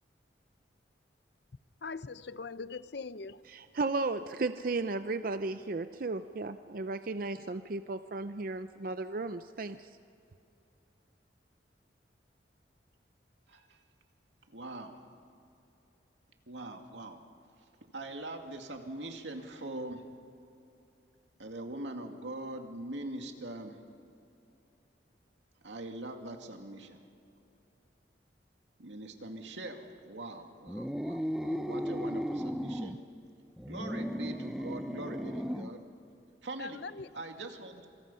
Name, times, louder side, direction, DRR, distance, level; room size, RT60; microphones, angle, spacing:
voice 1, 1.8-3.4 36.6-37.1, left 4 dB, 65° left, 14 dB, 0.7 m, -41 dB
voice 2, 3.5-9.9, right 3 dB, 50° right, 10 dB, 0.6 m, -35 dB
voice 3, 14.5-15.0 16.5-17.2 17.9-20.0 21.4-23.8 25.6-27.0 28.8-33.0 33.6-35.8 36.4-36.8 37.1-37.9, right 1 dB, 85° right, 4 dB, 2.4 m, -42 dB
sound 1, 30.7-33.0 33.6-35.8, equal, ahead, 0.7 m, -35 dB
26.5 x 26.5 x 5.6 m, 2.7 s
head